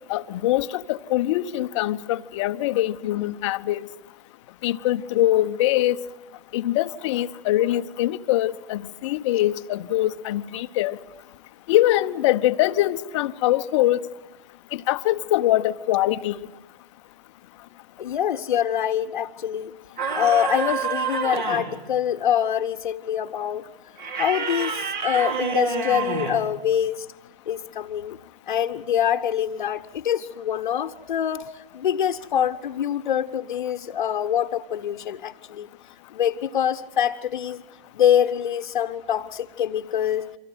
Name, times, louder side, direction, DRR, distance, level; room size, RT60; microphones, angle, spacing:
voice 1, 0.1-3.8 4.6-6.0 6.5-11.0 11.7-14.0 14.7-16.4, left 14 dB, 30° left, 0.9 m, -23 dB
voice 2, 18.0-19.7 20.1-23.7 24.2-27.1 27.5-28.2 28.5-35.7 36.1-37.6 37.9-40.3, left 9 dB, 50° left, 1.2 m, -25 dB
sound 1, 20.0-21.8 24.0-26.5, right 5 dB, 50° right, 4.8 m, -28 dB
29.5 x 25.0 x 8.1 m
figure-of-eight pair, 130°, 29 cm